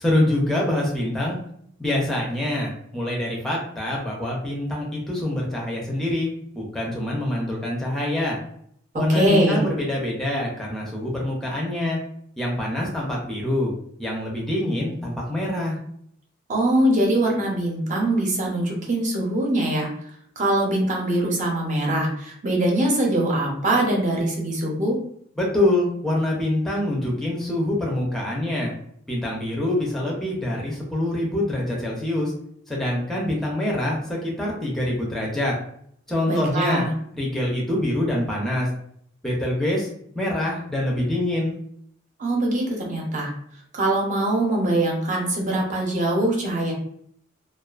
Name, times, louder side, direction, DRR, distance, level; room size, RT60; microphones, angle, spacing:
voice 1, 0.0-1.4 1.8-6.3 6.5-8.4 8.9-12.0 12.4-13.7 14.0-15.8 25.4-28.7 29.1-32.3 32.7-35.5 36.1-36.8 37.2-38.7 39.2-39.9 40.1-41.6, left 1 dB, ahead, -3 dB, 0.5 m, -25 dB
voice 2, 9.1-9.6 16.5-19.9 20.4-25.0 36.3-36.9 42.2-43.3 43.7-46.7, right 1 dB, 40° right, -1 dB, 0.7 m, -22 dB
2.4 x 2.3 x 2.3 m, 0.66 s
head